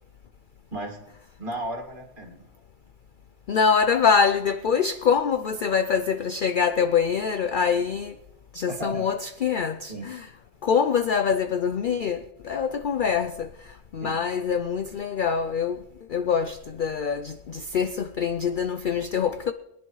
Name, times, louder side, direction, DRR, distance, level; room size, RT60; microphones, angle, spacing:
voice 1, 0.7-1.0 1.4-2.5 8.7-9.0 9.9-10.1 14.0-14.2, right 1 dB, 40° right, 2.2 m, -34 dB
voice 2, 3.5-8.1 8.5-10.3 10.6-13.5 13.9-15.8 16.1-19.5, left 6 dB, 60° left, 0.5 m, -24 dB
22.5 x 10.5 x 3.2 m
omnidirectional pair, 1.3 m